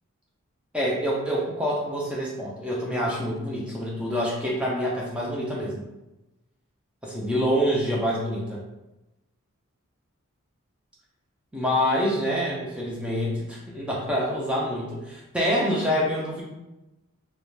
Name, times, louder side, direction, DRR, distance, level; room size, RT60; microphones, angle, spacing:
voice 1, 0.7-5.8 7.0-8.6 11.5-16.4, equal, 5° right, -4 dB, 0.4 m, -26 dB
2.3 x 2.1 x 3.1 m, 0.98 s
head